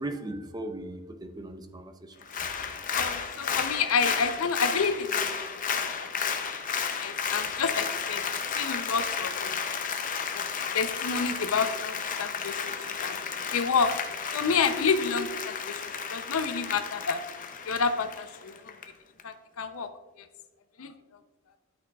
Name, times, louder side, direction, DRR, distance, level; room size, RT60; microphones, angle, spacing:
voice 1, 0.0-2.3, right 1 dB, 20° right, 7 dB, 0.5 m, -38 dB
Applause, 2.2-18.8 19.2-19.3, left 6 dB, 40° left, 0.6 m, -32 dB
voice 2, 3.0-5.4 5.7-6.1 7.0-8.2 8.5-9.6 10.3-10.4 10.7-13.2 13.5-13.9 14.3-17.2 17.6-18.7 19.2-19.9 20.2-20.3 20.8-20.9, left 5 dB, 90° left, 10 dB, 0.6 m, -29 dB
10.5 x 5.9 x 2.3 m, 1.2 s
head